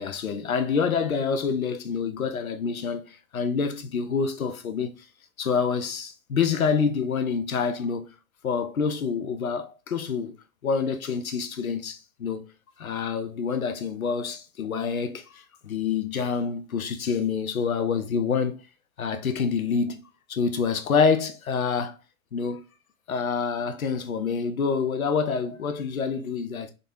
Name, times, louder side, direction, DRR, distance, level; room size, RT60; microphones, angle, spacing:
voice 1, 0.0-5.0 5.4-8.1 8.4-10.3 10.6-12.5 12.8-18.6 19.0-22.0 22.3-22.6 23.1-26.7, left 5 dB, 80° left, 0.6 m, -27 dB
3.8 x 2.7 x 2.3 m
figure-of-eight pair, 85°, 41 cm